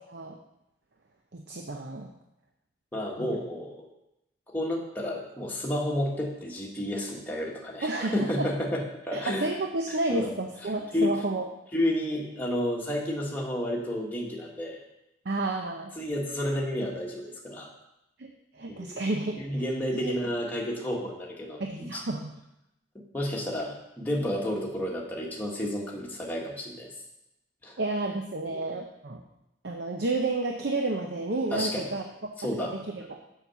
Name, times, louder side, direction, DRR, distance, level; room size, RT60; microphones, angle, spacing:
voice 1, 1.3-2.1 3.2-3.4 7.8-8.5 9.1-11.4 15.3-15.9 18.2-19.6 19.9-20.1 21.6-22.3 27.8-29.2 29.6-32.0 32.6-32.8 33.1-33.2, right 2 dB, 55° right, 3 dB, 0.7 m, -31 dB
voice 2, 2.9-3.9 4.5-9.4 9.9-10.3 10.9-11.1 11.7-14.8 16.0-17.7 18.7-19.0 19.4-22.0 23.1-26.9 27.6-27.8 28.5-28.7 31.5-31.9 32.4-32.7, left 1 dB, 10° left, -3 dB, 1.5 m, -31 dB
7.2 x 5.8 x 7.0 m, 0.86 s
head